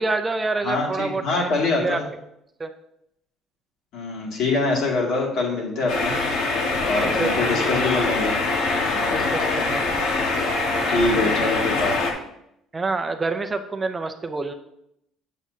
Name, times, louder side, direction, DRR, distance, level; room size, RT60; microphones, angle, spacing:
voice 1, 0.0-1.5 1.8-2.0 2.6-2.7 7.0-7.8 9.1-10.0 11.2-11.4 12.7-14.5, right 3 dB, 20° right, 6 dB, 0.4 m, -27 dB
voice 2, 0.6-2.0 3.9-6.2 6.8-8.3 8.9-9.2 10.9-12.0, left 3 dB, 65° left, -2 dB, 2.2 m, -24 dB
sound 1, 5.9-12.1, left 3 dB, 85° left, 1.4 m, -23 dB
7.9 x 7.2 x 2.8 m, 0.79 s
cardioid pair, 155°, 0 cm